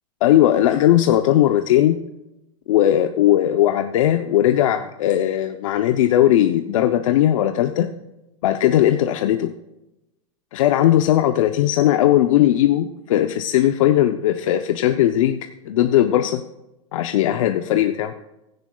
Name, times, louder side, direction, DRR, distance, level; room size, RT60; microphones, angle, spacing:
voice 1, 0.2-2.0 2.7-7.9 8.4-9.5 10.5-15.4 15.7-16.4 16.9-18.1, left 12 dB, 70° left, 7 dB, 0.7 m, -18 dB
16.0 x 14.0 x 2.3 m, 0.94 s
supercardioid pair, 135°, 17 cm